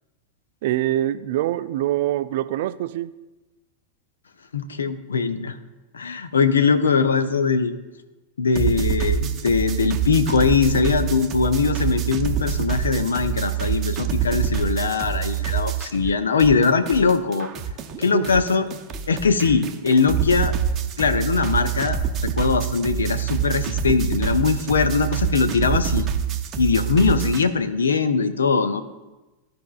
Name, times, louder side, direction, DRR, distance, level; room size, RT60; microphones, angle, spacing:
voice 1, 0.6-3.1 16.0-16.1 18.1-18.4, right 13 dB, 55° right, 13 dB, 0.3 m, -24 dB
voice 2, 4.5-5.6 5.9-7.7 8.4-17.5 18.0-18.6 19.1-20.5 21.0-22.0 22.2-26.1 26.6-28.8, left 5 dB, 70° left, 11 dB, 0.6 m, -21 dB
sound 1, 8.5-16.1 16.4-27.4, right 8 dB, 30° right, 0.7 m, -26 dB
15.0 x 5.1 x 2.4 m, 1.1 s
figure-of-eight pair, 90°, 0 cm